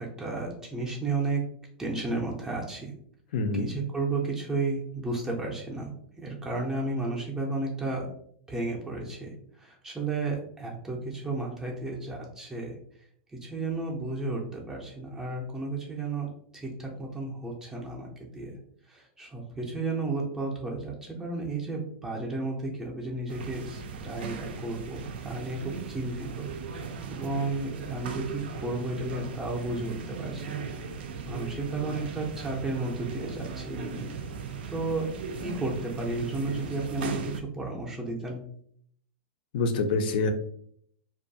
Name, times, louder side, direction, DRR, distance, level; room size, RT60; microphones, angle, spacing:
voice 1, 0.0-1.4 1.8-2.9 3.5-8.1 8.5-12.7 13.4-16.3 16.5-18.6 18.9-30.7 31.3-34.2 34.7-35.1 35.4-38.4, right 3 dB, 10° right, -2 dB, 0.4 m, -33 dB
voice 2, 3.3-3.7 39.5-40.3, left 3 dB, 65° left, 7 dB, 0.4 m, -26 dB
sound 1, 23.3-37.4, right 5 dB, 80° right, 0.4 m, -38 dB
2.5 x 2.2 x 2.6 m, 0.64 s
supercardioid pair, 150°, 5 cm